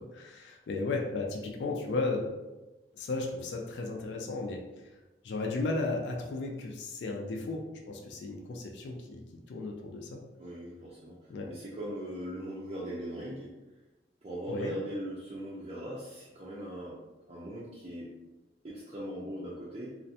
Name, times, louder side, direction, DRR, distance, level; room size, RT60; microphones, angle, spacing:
voice 1, 0.1-2.3 3.0-4.6 5.2-7.6 7.9-9.2 9.5-10.2 11.3-11.5 14.5-14.7, left 3 dB, 75° left, 1 dB, 0.3 m, -34 dB
voice 2, 10.4-13.5 14.2-16.9 17.3-18.1 18.6-19.9, right 1 dB, 35° right, -7 dB, 0.4 m, -40 dB
2.4 x 2.1 x 2.6 m, 1.1 s
head